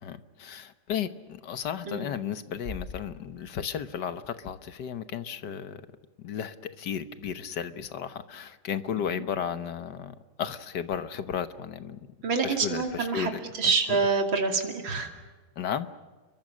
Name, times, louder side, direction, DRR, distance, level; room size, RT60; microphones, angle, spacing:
voice 1, 0.0-5.8 6.2-12.0 12.4-14.0 15.6-15.9, left 8 dB, 60° left, 11 dB, 1.5 m, -34 dB
Bass drum, 2.6-4.3, left 3 dB, 25° left, 4.2 m, -43 dB
voice 2, 12.2-13.3 13.6-15.1, right 4 dB, 65° right, 4 dB, 3.3 m, -26 dB
30.0 x 22.5 x 6.3 m, 1.3 s
omnidirectional pair, 2.3 m